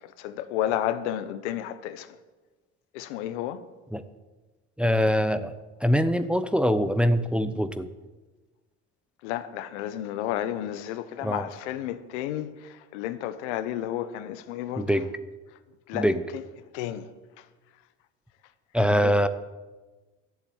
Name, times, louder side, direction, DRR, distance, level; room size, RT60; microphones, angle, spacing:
voice 1, 0.2-2.1 2.9-3.6 9.2-12.5 12.9-14.9 15.9-16.1 16.3-16.4 16.7-17.0 19.0-19.1, left 12 dB, 80° left, 1.0 m, -31 dB
voice 2, 4.8-5.5 5.8-7.9 11.2-11.5 14.8-15.1 15.9-16.2 18.7-19.3, equal, 5° right, 0.8 m, -23 dB
12.0 x 7.4 x 9.3 m
supercardioid pair, 85°, 34 cm